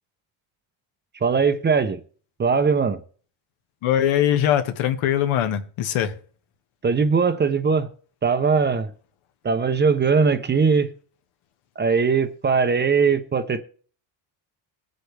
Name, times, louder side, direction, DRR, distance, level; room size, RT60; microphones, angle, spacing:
voice 1, 1.2-2.0 2.4-3.0 6.8-7.9 8.2-8.9 9.4-10.9 11.8-13.6, right 5 dB, 20° right, 0.6 m, -20 dB
voice 2, 3.8-6.1, left 11 dB, 80° left, 1.5 m, -21 dB
21.5 x 8.0 x 3.3 m
cardioid pair, 160°, 48 cm